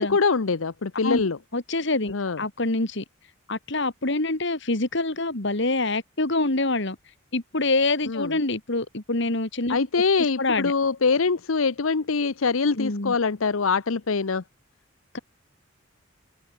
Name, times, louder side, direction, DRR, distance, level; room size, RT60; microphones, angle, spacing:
voice 1, 0.0-1.4 2.1-2.4 8.1-8.4 9.7-14.4, left 4 dB, 80° left, 0.8 m, -24 dB
voice 2, 1.0-3.0 3.5-7.0 7.3-9.9 10.4-10.7 12.8-13.2 15.1-15.2, left 2 dB, 60° left, 2.3 m, -26 dB
head